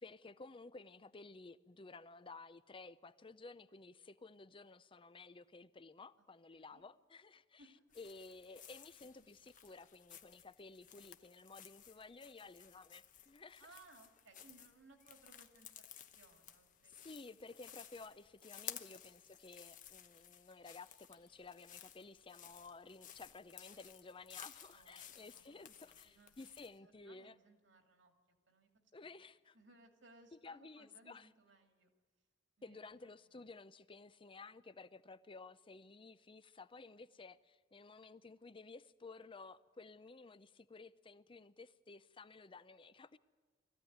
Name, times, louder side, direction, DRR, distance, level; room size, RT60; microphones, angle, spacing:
voice 1, 0.0-7.6 8.0-13.7 16.9-27.4 28.9-29.6 30.4-31.3 32.6-43.2, left 3 dB, 25° left, 15 dB, 0.6 m, -54 dB
voice 2, 6.5-6.8 7.6-7.8 13.6-17.1 18.7-18.8 24.6-28.1 28.5-28.9 29.5-31.9 32.6-33.4, right 2 dB, 70° right, 4 dB, 2.6 m, -65 dB
sound 1, 7.9-26.8, left 10 dB, 45° left, 1.0 m, -56 dB
21.0 x 14.5 x 9.5 m, 1.5 s
head